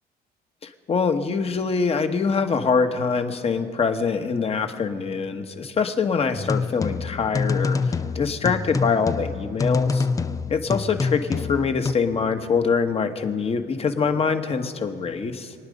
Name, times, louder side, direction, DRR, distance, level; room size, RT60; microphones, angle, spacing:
voice 1, 0.6-10.1 10.5-15.5, left 5 dB, 35° left, 7 dB, 1.3 m, -24 dB
sound 1, 6.3-11.9, left 4 dB, 20° left, 0.4 m, -26 dB
27.5 x 9.9 x 5.2 m, 2.4 s
cardioid pair, 110°, 17 cm